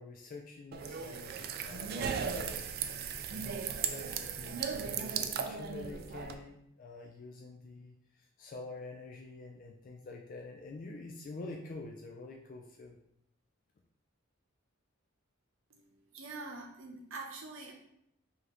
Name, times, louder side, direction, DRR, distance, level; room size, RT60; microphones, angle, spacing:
voice 1, 0.0-2.7 3.3-13.0, left 3 dB, 40° left, 1 dB, 0.3 m, -47 dB
sound 1, 0.7-6.3, right 6 dB, 50° right, 0.3 m, -37 dB
voice 2, 15.7-17.7, right 3 dB, 70° right, 1 dB, 0.8 m, -45 dB
4.9 x 2.5 x 3.0 m, 0.76 s
head